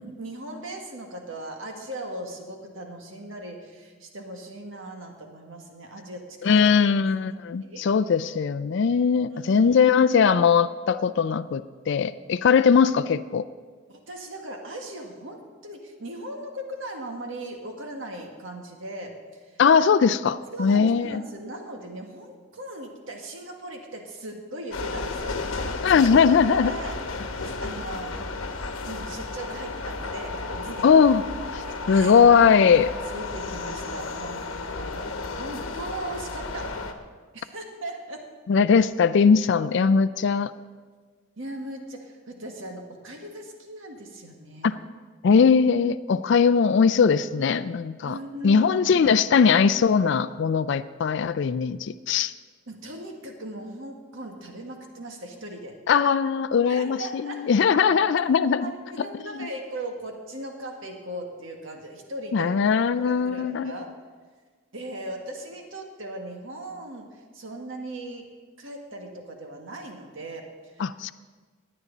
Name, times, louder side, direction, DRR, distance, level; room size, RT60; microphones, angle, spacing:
voice 1, 0.2-6.7 7.6-7.9 9.3-9.8 13.9-19.2 19.5-19.6 20.5-26.1 26.5-27.0 27.3-28.3 28.8-30.9 31.6-32.2 32.5-32.6 33.1-36.8 37.3-38.3 41.4-44.8 48.0-49.1 52.7-55.8 56.7-57.5 58.6-62.6 63.0-63.9 64.7-67.1 67.3-68.2 68.6-70.9, right 1 dB, 70° right, 2 dB, 1.7 m, -38 dB
voice 2, 6.4-13.4 19.6-21.2 25.8-26.7 30.8-31.2 31.5-32.9 38.5-40.5 44.6-44.8 45.2-48.2 48.4-52.3 55.9-58.7 59.0-59.1 59.3-59.5 62.3-63.7 70.8-71.1, left 6 dB, 60° left, 13 dB, 0.4 m, -20 dB
sound 1, 24.7-36.9, left 3 dB, 85° left, 1.0 m, -33 dB
17.0 x 9.6 x 4.0 m, 1.5 s
head